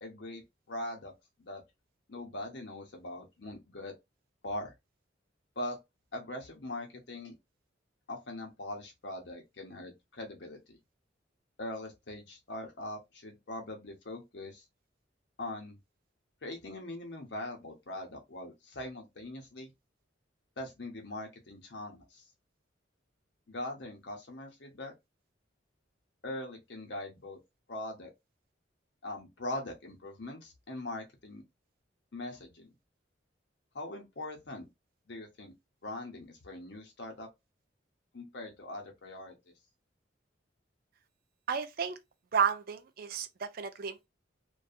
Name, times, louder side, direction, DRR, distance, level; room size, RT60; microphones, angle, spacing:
voice 1, 0.0-1.1 1.4-1.6 2.1-3.9 4.4-4.7 5.6-5.8 6.1-7.3 8.1-10.8 11.6-14.6 15.4-15.8 16.4-19.7 20.6-22.3 23.5-24.9 26.2-27.4 27.7-28.1 29.0-31.4 32.1-32.7 33.7-34.6 35.1-35.5 35.8-37.3 38.1-39.5, left 1 dB, 65° left, 0.8 m, -41 dB
voice 2, 41.5-42.0 42.3-44.1, right 7 dB, 50° right, 0.4 m, -32 dB
2.6 x 2.3 x 2.4 m
head